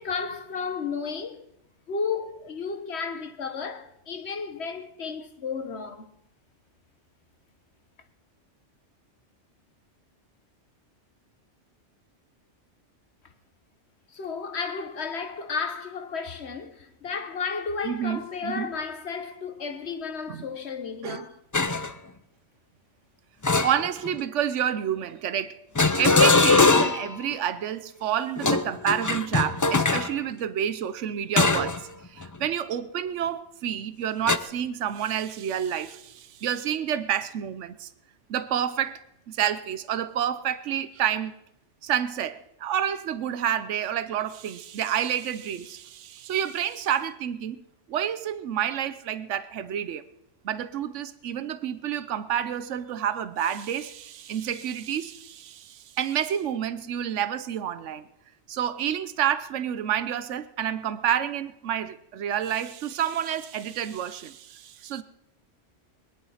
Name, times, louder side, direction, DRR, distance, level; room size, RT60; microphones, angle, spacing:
voice 1, 0.0-1.4 1.9-6.1 14.1-21.3, left 5 dB, 65° left, 1.5 m, -33 dB
voice 2, 17.8-18.7 20.3-20.4 21.0-21.2 23.6-25.6 25.9-37.9 38.3-41.3 41.8-47.6 47.9-50.0 50.4-58.1 58.5-65.0, right 9 dB, 85° right, 1.1 m, -29 dB
sound 1, 21.5-21.9 23.4-24.2 25.8-27.1 28.4-30.1 31.4-31.8 32.2-32.4 34.3-34.4, left 3 dB, 25° left, 0.5 m, -21 dB
21.0 x 11.0 x 5.6 m
omnidirectional pair, 1.2 m